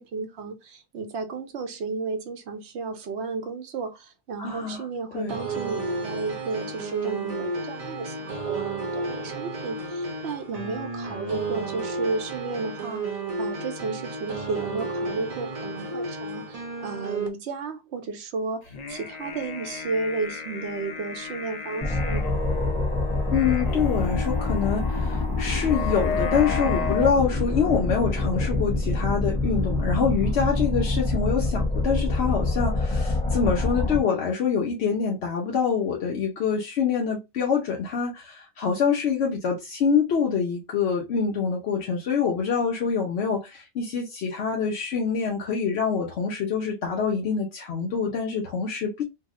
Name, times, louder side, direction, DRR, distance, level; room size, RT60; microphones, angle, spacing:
voice 1, 0.0-22.3, right 4 dB, 80° right, 1.0 m, -33 dB
voice 2, 4.4-4.8 5.1-5.4 23.3-49.0, left 6 dB, 80° left, 0.9 m, -25 dB
sound 1, 5.3-17.3, right 3 dB, 40° right, 0.7 m, -32 dB
sound 2, 18.7-27.1, left 5 dB, 50° left, 0.5 m, -34 dB
sound 3, 21.8-34.0, left 2 dB, 5° left, 0.7 m, -26 dB
2.8 x 2.0 x 3.5 m
omnidirectional pair, 1.1 m